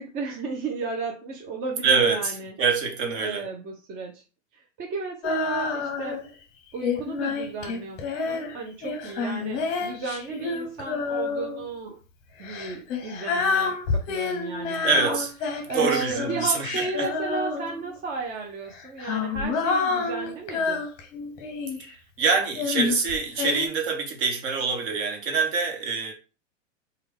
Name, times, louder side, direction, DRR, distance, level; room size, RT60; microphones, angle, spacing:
voice 1, 0.0-2.5 3.2-4.2 4.5-6.2 6.7-12.0 12.4-15.2 15.7-20.9, right 4 dB, 20° right, 0.4 m, -34 dB
voice 2, 1.8-3.5 14.8-15.3 15.7-17.1 21.9-26.1, right 5 dB, 45° right, 1.1 m, -25 dB
Female singing, 5.2-6.3 6.8-11.6 12.4-18.0 18.7-21.9 22.5-23.7, left 4 dB, 35° left, 0.9 m, -28 dB
3.3 x 2.3 x 3.3 m
hypercardioid pair, 120°, 38 cm